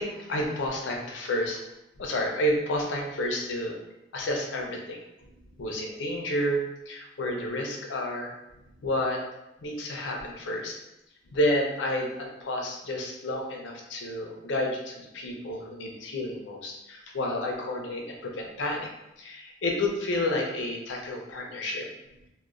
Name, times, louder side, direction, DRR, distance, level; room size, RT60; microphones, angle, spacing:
voice 1, 0.0-1.6 2.0-3.8 4.1-5.0 5.6-6.6 6.9-8.4 8.8-9.2 9.6-10.8 11.3-18.9 19.2-21.9, left 1 dB, 85° left, 0 dB, 0.5 m, -30 dB
2.9 x 2.1 x 2.4 m, 0.91 s
head